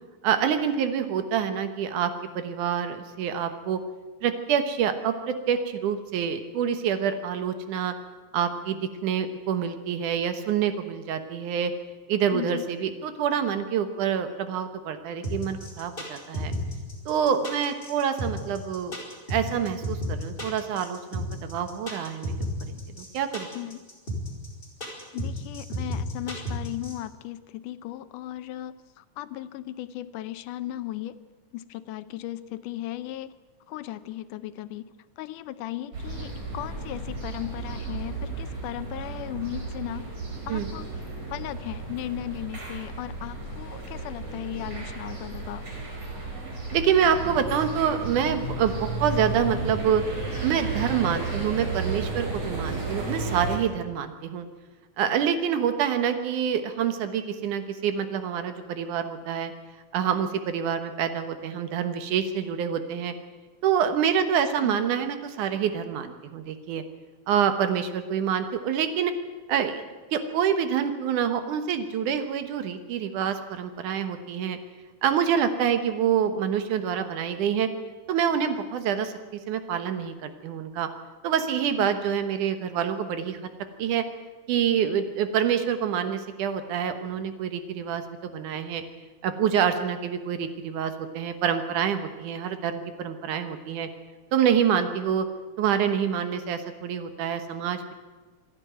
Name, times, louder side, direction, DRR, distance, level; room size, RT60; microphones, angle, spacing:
voice 1, 0.2-3.8 4.2-7.9 8.3-11.7 12.1-16.5 17.1-19.0 19.3-22.4 22.7-23.5 40.5-40.7 46.7-50.0 50.4-54.5 55.0-59.5 59.9-63.1 63.6-66.8 67.3-69.1 69.5-69.8 70.1-74.6 75.0-77.7 78.1-79.1 79.5-80.9 81.2-83.4 83.8-84.0 84.5-88.8 89.2-93.9 94.3-95.3 95.6-97.9, right 8 dB, 75° right, 9 dB, 2.7 m, -26 dB
voice 2, 12.3-12.6 23.5-23.8 25.1-31.2 31.5-33.3 33.7-34.9 35.2-40.1 40.5-40.9 41.3-45.7 64.6-64.8 81.8-81.9, left 14 dB, 80° left, 14 dB, 2.3 m, -36 dB
sound 1, 15.2-26.9, left 1 dB, 15° left, 4.8 m, -32 dB
sound 2, 35.9-53.6, right 3 dB, 50° right, 5.9 m, -33 dB
26.5 x 11.0 x 9.2 m, 1.3 s
omnidirectional pair, 3.7 m